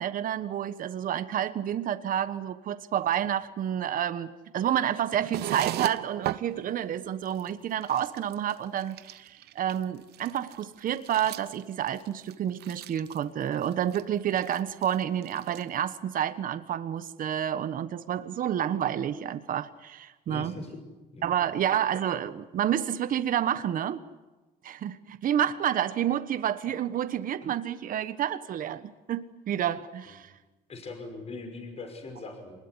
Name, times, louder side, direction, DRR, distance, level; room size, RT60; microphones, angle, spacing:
voice 1, 0.0-20.5 21.2-24.0 24.6-28.8 29.1-30.3, right 10 dB, 55° right, 11 dB, 1.3 m, -29 dB
sound 1, 5.1-6.5 7.0-7.1 7.3-7.5 7.8-8.5 8.8-9.8 10.1-13.2 13.5-14.0 14.4-15.0 15.2-15.7, right 14 dB, 70° right, 1.0 m, -36 dB
voice 2, 20.3-20.8 21.1-21.5 30.1-30.2 30.7-32.6, left 3 dB, 35° left, 4 dB, 5.8 m, -41 dB
25.0 x 20.5 x 9.8 m, 1.1 s
cardioid pair, 110°, 17 cm